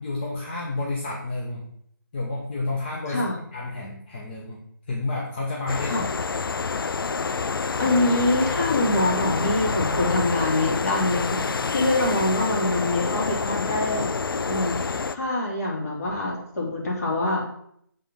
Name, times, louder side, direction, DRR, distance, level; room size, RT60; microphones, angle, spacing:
voice 1, 0.0-1.7 2.1-4.6 4.9-5.9, left 2 dB, 25° left, -4 dB, 1.0 m, -30 dB
sound 1, 5.7-15.2, left 4 dB, 75° left, 0.5 m, -27 dB
voice 2, 7.8-14.1 14.5-17.5, left 2 dB, 45° left, -1 dB, 2.4 m, -25 dB
7.4 x 3.8 x 5.3 m, 0.69 s
hypercardioid pair, 170°, 12 cm